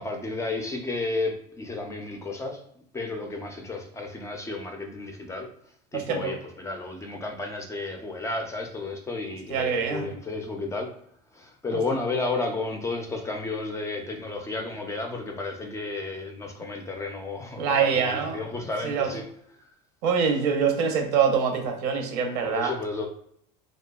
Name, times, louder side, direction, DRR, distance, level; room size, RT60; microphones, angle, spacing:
voice 1, 0.0-2.6 2.9-5.5 5.9-11.0 11.3-19.3 19.6-19.7 22.4-23.1, left 3 dB, 15° left, 3 dB, 0.3 m, -32 dB
voice 2, 5.9-6.3 9.5-10.1 17.6-18.4 18.8-19.1 20.0-22.7, right 6 dB, 80° right, 4 dB, 0.7 m, -24 dB
2.6 x 2.2 x 2.2 m, 0.70 s
supercardioid pair, 125°, 20 cm